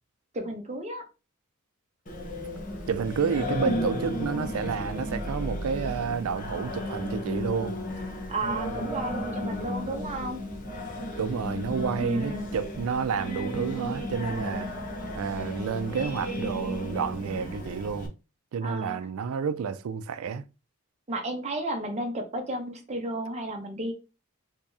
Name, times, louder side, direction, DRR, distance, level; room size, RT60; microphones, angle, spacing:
voice 1, 0.3-1.0 8.3-10.4 12.0-12.5 18.6-19.0 21.1-23.9, right 1 dB, 30° right, 0.8 m, -32 dB
Singing, 2.1-18.1, left 1 dB, 40° left, 0.8 m, -34 dB
voice 2, 2.9-7.8 11.2-14.7 15.1-18.1 18.5-20.4, right 6 dB, 75° right, 0.4 m, -30 dB
3.0 x 2.8 x 3.5 m
head